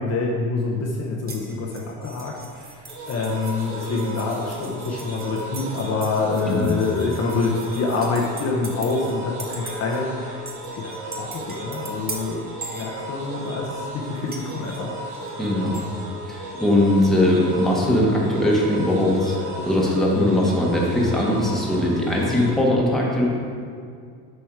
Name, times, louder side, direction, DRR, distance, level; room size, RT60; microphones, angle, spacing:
voice 1, 0.0-10.5 10.8-12.4 12.8-14.9, left 3 dB, 45° left, -2 dB, 1.0 m, -26 dB
sound 1, 1.3-9.1 9.4-10.0 10.5-13.5 14.3-15.9, right 4 dB, 25° right, 1.1 m, -40 dB
sound 2, 2.9-22.5, right 1 dB, 75° right, 1.9 m, -35 dB
voice 2, 15.4-15.7 16.3-19.4 19.6-23.3, left 1 dB, ahead, -4 dB, 1.4 m, -20 dB
8.0 x 5.3 x 4.8 m, 2.2 s
cardioid pair, 125°, 37 cm